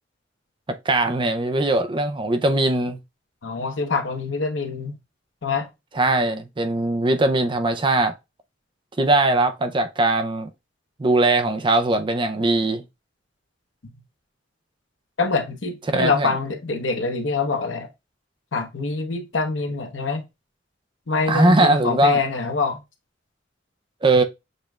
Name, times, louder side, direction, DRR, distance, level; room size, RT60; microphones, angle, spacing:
voice 1, 0.9-3.0 5.9-8.1 9.0-10.5 11.0-12.8 15.9-16.3 21.3-22.2 24.0-24.2, right 2 dB, 25° right, 0.5 m, -20 dB
voice 2, 3.4-5.0 5.4-5.7 15.2-17.9 18.5-20.2 21.1-22.8, left 4 dB, 85° left, 1.0 m, -25 dB
6.6 x 3.2 x 2.3 m
head